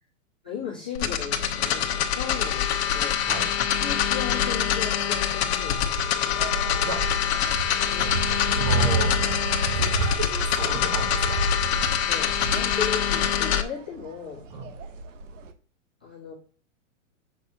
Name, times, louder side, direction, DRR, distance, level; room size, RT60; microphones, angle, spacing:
voice 1, 0.4-3.4 3.8-6.2 7.9-8.1 12.0-14.5 16.0-16.3, left 7 dB, 10° left, -9 dB, 0.4 m, -36 dB
sound 1, 0.9-13.6, left 9 dB, 55° left, 1.2 m, -25 dB
voice 2, 3.2-3.5 6.8-7.0 8.6-9.2 9.7-11.4 14.5-14.7, right 2 dB, 20° right, 5 dB, 0.9 m, -33 dB
sound 2, 5.6-15.5, right 3 dB, 70° right, 1.1 m, -30 dB
8.2 x 5.9 x 2.8 m, 0.40 s
supercardioid pair, 175°, 39 cm